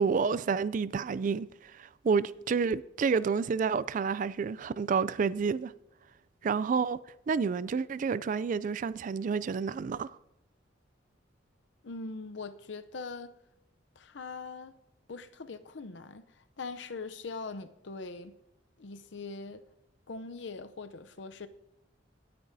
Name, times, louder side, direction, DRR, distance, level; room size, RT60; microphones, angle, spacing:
voice 1, 0.0-1.5 1.8-5.7 6.4-7.0 7.3-10.2, right 5 dB, 45° right, 0.3 m, -29 dB
voice 2, 11.8-13.3 14.0-14.7 15.1-18.4 18.8-19.6 20.1-21.5, left 4 dB, 70° left, 0.6 m, -42 dB
17.5 x 8.7 x 2.7 m
head